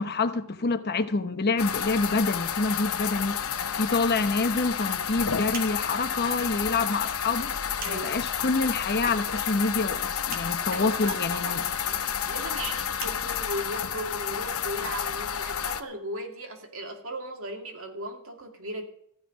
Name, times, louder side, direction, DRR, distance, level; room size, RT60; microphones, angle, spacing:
voice 1, 0.0-11.6, left 3 dB, 50° left, 1.0 m, -27 dB
sound 1, 1.6-15.8, left 8 dB, 85° left, 0.9 m, -30 dB
sound 2, 5.5-16.0, right 4 dB, 40° right, 2.4 m, -46 dB
voice 2, 10.7-18.8, right 1 dB, 70° right, 2.5 m, -37 dB
15.0 x 5.9 x 9.6 m
head